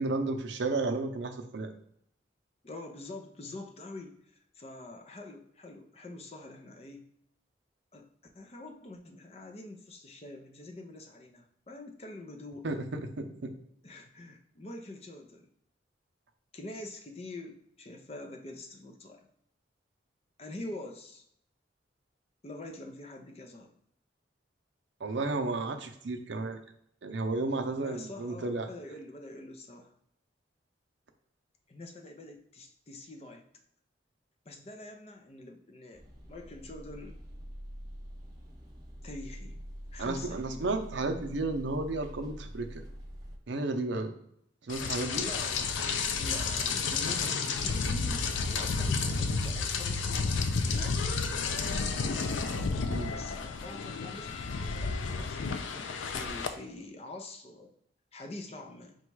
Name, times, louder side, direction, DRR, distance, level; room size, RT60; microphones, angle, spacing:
voice 1, 0.0-1.7 12.6-13.5 25.0-26.6 27.0-28.7 40.0-42.8 43.5-44.1 44.7-45.2 52.9-53.1, right 2 dB, 75° right, 5 dB, 0.6 m, -32 dB
voice 2, 2.6-7.1 7.9-8.1 8.3-12.7 13.8-15.5 16.5-19.3 20.4-21.2 22.4-23.7 27.8-29.9 31.7-33.4 34.5-37.2 39.0-39.6 39.9-40.8 44.9-52.5 53.1-57.7 58.1-59.0, left 2 dB, 35° left, 3 dB, 0.5 m, -45 dB
sound 1, 35.9-43.4, equal, 20° right, 0.7 m, -45 dB
Rain, 44.7-56.5, left 4 dB, 90° left, 0.4 m, -31 dB
4.0 x 2.3 x 4.6 m, 0.71 s
head